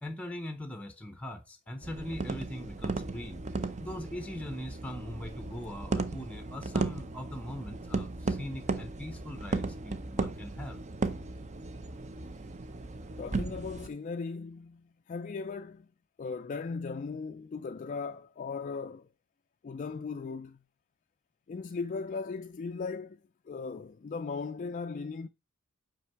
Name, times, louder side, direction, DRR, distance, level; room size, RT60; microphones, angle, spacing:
voice 1, 0.0-10.8, left 1 dB, 5° left, 0.6 m, -41 dB
sound 1, 1.8-13.9, right 3 dB, 35° right, 0.5 m, -36 dB
voice 2, 13.2-15.9 16.2-19.1 19.6-20.6 21.5-23.2 23.5-25.3, left 4 dB, 35° left, 0.3 m, -37 dB
5.8 x 5.2 x 4.6 m
head